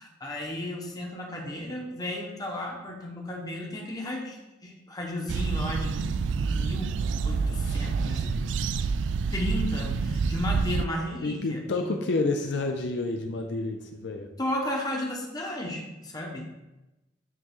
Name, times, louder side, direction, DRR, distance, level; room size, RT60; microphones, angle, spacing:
voice 1, 0.0-6.0 6.4-7.0 7.2-8.4 9.3-11.9 14.4-16.5, left 1 dB, 20° left, 0 dB, 1.0 m, -34 dB
sound 1, 5.3-10.9, right 5 dB, 70° right, 0.3 m, -28 dB
voice 2, 11.2-14.3, left 3 dB, 65° left, 4 dB, 0.5 m, -29 dB
9.4 x 3.2 x 3.7 m, 1.0 s
head